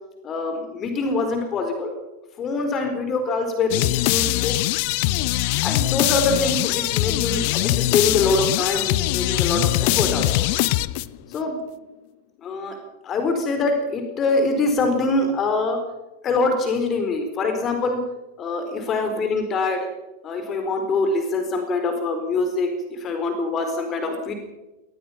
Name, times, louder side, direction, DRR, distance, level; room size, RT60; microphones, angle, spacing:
voice 1, 0.2-1.9 2.4-4.5 5.6-10.5 11.3-11.6 12.4-15.8 16.2-18.0 18.4-19.9 20.2-24.3, left 3 dB, 30° left, 6 dB, 4.1 m, -24 dB
sound 1, 3.7-11.4, left 18 dB, 45° left, 0.7 m, -22 dB
25.0 x 19.0 x 5.8 m, 1.0 s
figure-of-eight pair, 90°, 0 cm